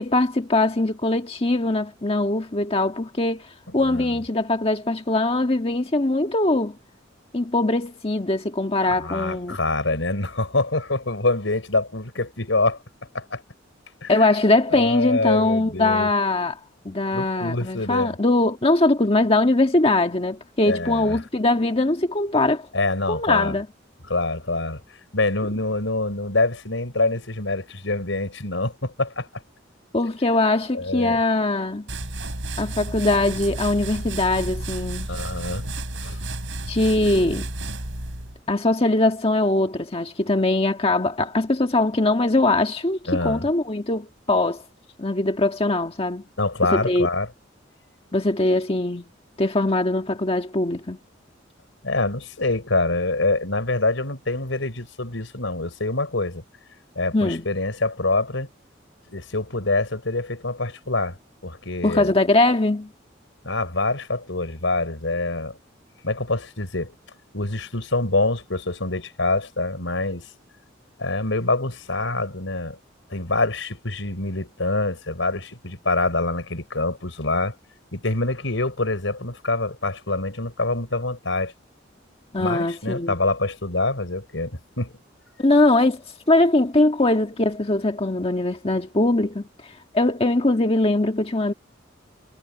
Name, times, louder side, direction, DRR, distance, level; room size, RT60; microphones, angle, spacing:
voice 1, 0.0-3.5 3.7-6.8 7.3-9.6 14.1-16.6 16.8-22.7 23.1-23.7 29.9-31.9 32.6-35.1 36.7-37.5 38.5-44.6 45.0-46.2 46.7-47.1 48.1-49.0 49.4-51.0 57.1-57.4 61.8-62.9 82.3-83.2 85.4-91.5, left 2 dB, 30° left, 1.6 m, -21 dB
voice 2, 3.8-4.2 8.9-12.8 13.1-13.4 14.0-14.1 14.7-16.1 17.1-18.2 20.7-21.2 22.7-23.6 24.0-24.8 25.1-29.4 30.7-31.2 35.1-35.7 36.0-36.2 43.1-43.5 46.4-47.3 51.8-56.4 56.9-58.5 59.1-61.2 61.4-62.1 63.4-65.6 66.0-66.9 67.3-70.3 71.0-72.8 73.1-77.5 77.9-81.5 82.4-84.9, left 2 dB, 80° left, 4.7 m, -25 dB
sound 1, 31.9-38.4, right 2 dB, 75° right, 6.2 m, -32 dB
head